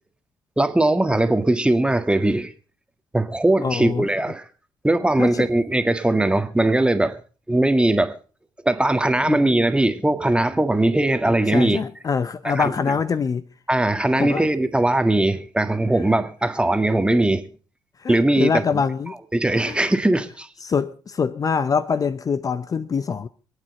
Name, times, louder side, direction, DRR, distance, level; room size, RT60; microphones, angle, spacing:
voice 1, 0.6-2.5 3.1-4.4 4.8-7.2 7.5-8.1 8.6-11.8 12.4-12.7 13.7-17.5 18.1-18.6 19.3-20.5, right 1 dB, 10° right, 1.7 m, -20 dB
voice 2, 3.6-4.1 5.2-5.5 9.3-9.5 11.3-13.4 14.1-14.5 18.0-19.2 19.7-19.8 20.6-23.3, left 6 dB, 40° left, 0.7 m, -24 dB
26.0 x 9.1 x 4.2 m
hypercardioid pair, 45°, 9 cm